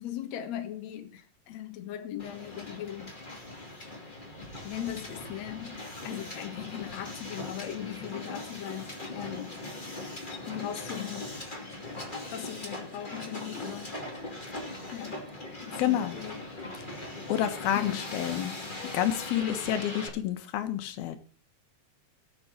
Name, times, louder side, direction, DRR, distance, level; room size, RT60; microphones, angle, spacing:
voice 1, 0.0-3.1 4.6-9.6 10.5-11.4 12.3-13.9 14.9-15.3 15.6-16.4 17.8-18.0 19.3-19.6, left 11 dB, 60° left, 2.3 m, -39 dB
Hiss, 2.2-20.1, left 2 dB, 15° left, 2.1 m, -40 dB
voice 2, 15.8-16.2 17.3-18.6 18.9-21.2, left 11 dB, 85° left, 3.1 m, -29 dB
18.5 x 7.1 x 4.2 m
omnidirectional pair, 4.2 m